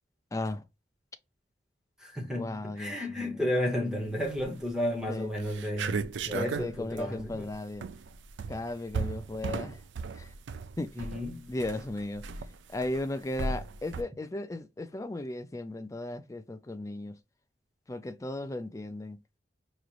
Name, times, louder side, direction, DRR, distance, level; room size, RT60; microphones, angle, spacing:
voice 1, 0.3-0.6 2.4-3.3 5.1-5.3 6.3-7.8 8.5-9.8 10.1-10.3 10.8-10.9 11.5-12.2 12.7-17.1 17.9-19.2, left 2 dB, 15° left, 0.4 m, -35 dB
voice 2, 2.0-7.5 10.9-11.5, left 1 dB, 5° right, 0.9 m, -33 dB
sound 1, 4.2-4.7 5.1-5.2 5.4-14.0, right 4 dB, 85° right, 0.4 m, -36 dB
5.0 x 3.1 x 2.4 m
head